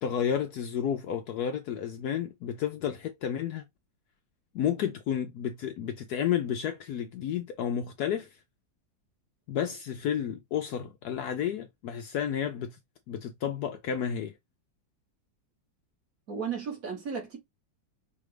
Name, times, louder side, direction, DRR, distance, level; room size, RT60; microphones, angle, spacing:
voice 1, 0.0-3.6 4.5-8.4 9.5-12.8 13.1-14.4, left 9 dB, 70° left, 1.0 m, -31 dB
voice 2, 16.3-17.4, right 6 dB, 50° right, 1.7 m, -34 dB
4.9 x 2.5 x 3.3 m
omnidirectional pair, 2.0 m